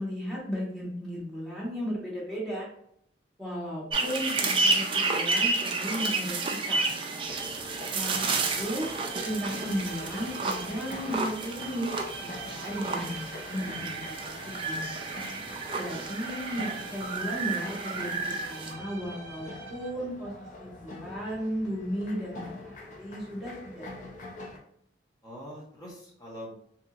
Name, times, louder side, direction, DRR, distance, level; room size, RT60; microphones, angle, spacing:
voice 1, 0.0-2.7 3.4-6.3 6.7-6.9 7.9-8.9 9.2-11.9 12.2-14.9 15.8-20.3 20.6-23.9, equal, ahead, -7 dB, 1.1 m, -35 dB
sound 1, 3.9-18.7, right 3 dB, 30° right, 0.3 m, -31 dB
sound 2, 7.2-24.6, left 1 dB, 45° left, 0.5 m, -45 dB
sound 3, 9.0-20.1, right 4 dB, 85° right, 0.5 m, -46 dB
voice 2, 25.2-26.5, equal, 20° left, -4 dB, 0.8 m, -44 dB
2.8 x 2.6 x 2.3 m, 0.69 s
head